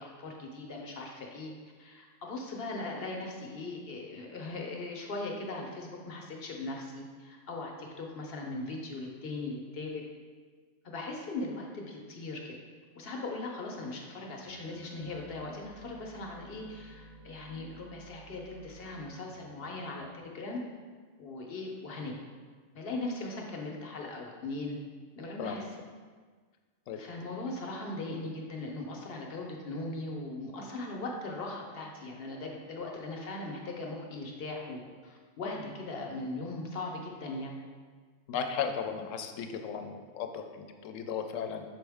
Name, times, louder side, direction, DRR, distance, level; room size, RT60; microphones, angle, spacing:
voice 1, 0.0-1.5 1.8-10.0 10.8-12.5 12.9-20.6 21.2-22.2 22.7-24.8 25.2-25.7 27.0-37.6, left 2 dB, 55° left, 0 dB, 0.9 m, -39 dB
sound 1, 14.5-19.9, right 2 dB, 85° right, 1.3 m, -53 dB
voice 2, 38.3-41.6, left 7 dB, 80° left, 6 dB, 0.9 m, -35 dB
6.3 x 4.3 x 3.5 m, 1.5 s
omnidirectional pair, 1.3 m